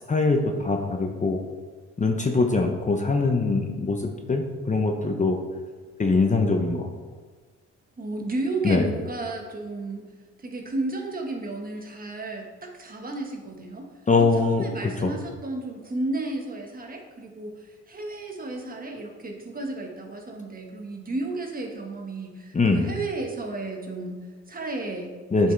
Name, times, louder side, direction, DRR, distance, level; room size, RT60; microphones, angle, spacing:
voice 1, 0.1-1.4 2.0-5.4 6.0-6.9 8.6-8.8 14.1-15.1 22.5-22.9 25.3-25.5, left 3 dB, 25° left, 3 dB, 0.8 m, -23 dB
voice 2, 8.0-10.1 10.4-13.9 14.2-25.1 25.4-25.5, right 2 dB, 30° right, 1 dB, 1.5 m, -33 dB
9.4 x 5.6 x 3.4 m, 1.4 s
cardioid pair, 90°, 30 cm